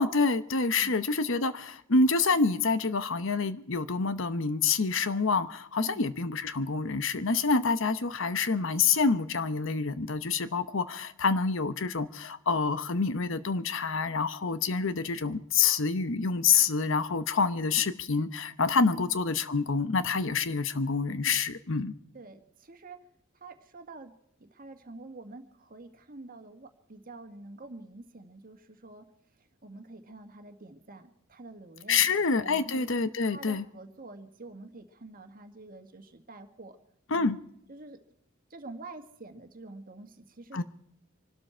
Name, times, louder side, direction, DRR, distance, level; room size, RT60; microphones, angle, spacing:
voice 1, 0.0-21.9 31.9-33.6 37.1-37.4 40.5-40.6, left 4 dB, 65° left, 12 dB, 0.9 m, -27 dB
voice 2, 22.1-23.0 23.4-24.1 24.4-29.0 29.6-32.9 33.2-36.8 37.1-37.3 37.7-38.0 38.5-40.6, right 2 dB, 45° right, 7 dB, 1.7 m, -47 dB
26.0 x 12.5 x 4.5 m, 0.74 s
head